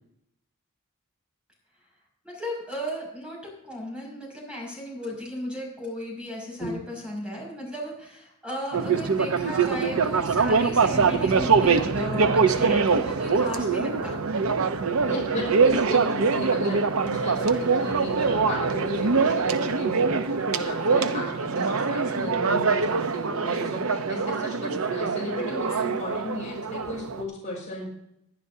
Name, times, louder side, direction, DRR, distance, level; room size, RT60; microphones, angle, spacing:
voice 1, 2.2-14.2, equal, 5° right, -3 dB, 6.3 m, -35 dB
sound 1, 8.7-27.2, right 5 dB, 75° right, 0.8 m, -24 dB
voice 2, 15.0-27.9, left 1 dB, 35° left, -3 dB, 5.1 m, -35 dB
20.5 x 11.0 x 2.8 m, 0.77 s
head